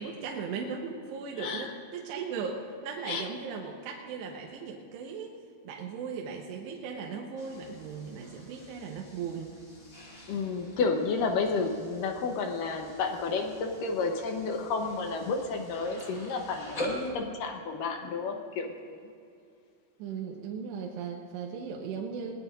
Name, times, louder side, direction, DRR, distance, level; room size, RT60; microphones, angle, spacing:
voice 1, 0.0-5.4 5.6-9.6 20.0-22.3, right 5 dB, 85° right, 0 dB, 3.2 m, -37 dB
voice 2, 1.4-1.7 3.1-3.2 10.3-19.0, left 4 dB, 75° left, 4 dB, 2.1 m, -31 dB
sound 1, 7.4-17.1, equal, 30° left, 1.7 m, -44 dB
21.5 x 19.0 x 2.6 m, 2.4 s
omnidirectional pair, 5.0 m